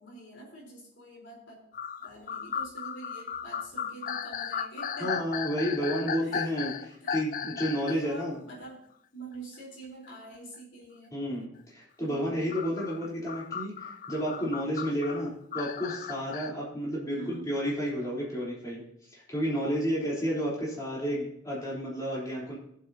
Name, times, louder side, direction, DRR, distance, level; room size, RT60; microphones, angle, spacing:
voice 1, 0.0-1.6 2.0-5.3 6.2-6.6 7.0-8.8 9.1-11.2 12.1-12.6 17.1-17.5, right 2 dB, 65° left, -2 dB, 3.9 m, -46 dB
sound 1, 1.7-8.1 8.5-8.6 10.1-10.2 12.5-16.5, left 7 dB, 40° left, 0.4 m, -36 dB
voice 2, 5.0-8.3 11.1-18.8 19.3-22.6, equal, 15° left, -6 dB, 3.6 m, -31 dB
19.0 x 7.8 x 2.8 m, 0.71 s
head